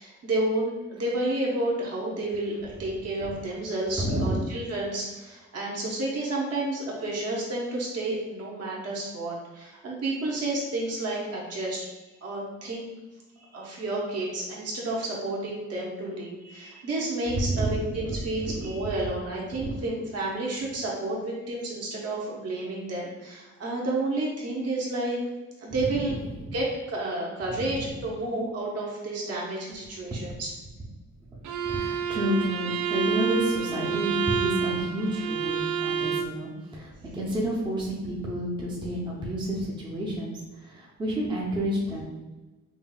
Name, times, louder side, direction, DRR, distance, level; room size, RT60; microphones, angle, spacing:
voice 1, 0.0-11.9 12.2-12.9 13.5-25.2 25.6-26.1 26.5-30.5, right 2 dB, 55° right, -3 dB, 1.1 m, -30 dB
voice 2, 4.0-4.3 17.3-18.7 19.5-19.7 25.7-26.6 27.5-27.9 31.6-42.2, right 1 dB, 15° right, -5 dB, 0.7 m, -30 dB
Bowed string instrument, 31.4-36.4, right 7 dB, 80° right, 0.5 m, -28 dB
5.5 x 2.5 x 2.3 m, 1.1 s
wide cardioid pair, 170°, 29 cm